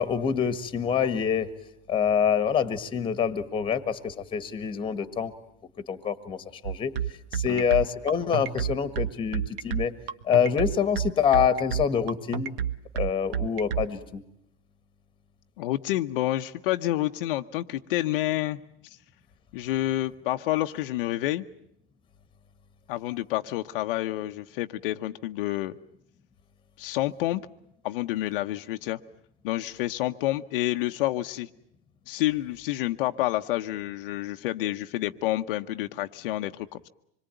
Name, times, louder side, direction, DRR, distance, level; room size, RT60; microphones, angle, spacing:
voice 1, 0.0-1.5 1.9-5.3 5.9-6.4 6.6-6.9 7.3-9.9 10.2-12.5 12.9-14.2, left 7 dB, 15° left, 12 dB, 1.7 m, -26 dB
sound 1, 6.6-13.9, right 9 dB, 80° right, 1.6 m, -29 dB
voice 2, 15.6-18.6 19.5-21.4 22.9-25.8 26.8-27.4 27.8-29.0 29.4-31.5 32.1-36.9, left 15 dB, 65° left, 6 dB, 1.0 m, -29 dB
26.0 x 22.0 x 9.2 m, 0.74 s
supercardioid pair, 150°, 29 cm